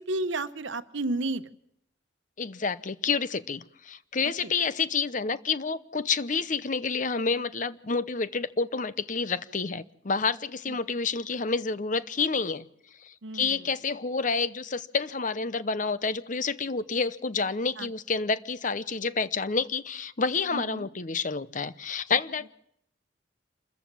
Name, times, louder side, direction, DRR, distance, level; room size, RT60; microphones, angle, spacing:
voice 1, 0.0-1.5 4.4-4.5 10.7-10.8 13.2-13.6 17.8-17.9 20.5-20.9, right 2 dB, 80° right, 11 dB, 1.0 m, -32 dB
voice 2, 2.4-12.7 13.0-22.5, left 4 dB, 40° left, 15 dB, 0.8 m, -29 dB
27.0 x 14.5 x 7.5 m, 0.73 s
head